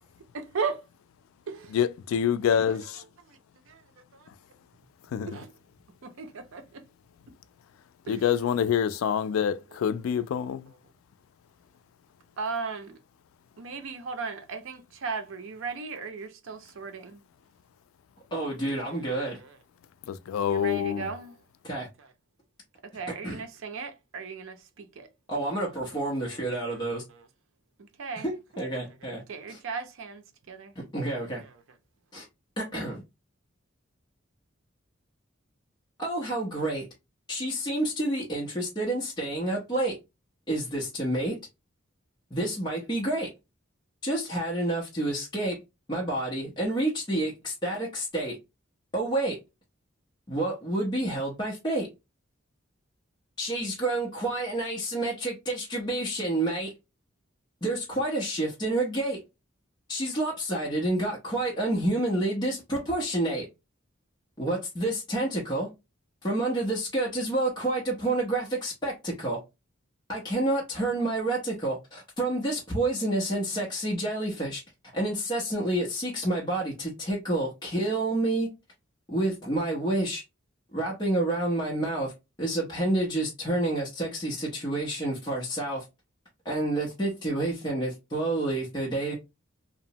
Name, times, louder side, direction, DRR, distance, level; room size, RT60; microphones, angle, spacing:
voice 1, 0.3-0.8 5.3-5.5 6.0-6.6 8.1-8.2 12.4-13.0 13.6-17.2 20.5-21.3 22.9-24.6 25.0-25.1 28.0-28.3 29.3-30.2 30.5-30.7, right 5 dB, 75° right, 0.5 m, -35 dB
voice 2, 1.7-2.8 5.1-5.4 8.1-10.7 20.1-21.1, left 8 dB, 85° left, 0.3 m, -26 dB
voice 3, 18.3-19.4 21.6-21.9 23.1-23.4 25.3-27.0 28.2-29.2 29.5-29.6 30.8-31.4 32.1-32.3 32.6-33.0 36.0-36.9 37.3-40.0 40.5-41.4 42.3-43.3 44.0-45.6 45.9-48.4 48.9-49.4 50.3-51.9 53.4-56.7 57.6-59.2 59.9-63.5 64.4-65.7 66.2-69.4 70.1-74.6 74.9-78.5 79.1-80.2 80.7-82.1 82.4-85.8 86.4-89.1, right 1 dB, 20° left, 0.6 m, -29 dB
2.8 x 2.0 x 2.7 m
head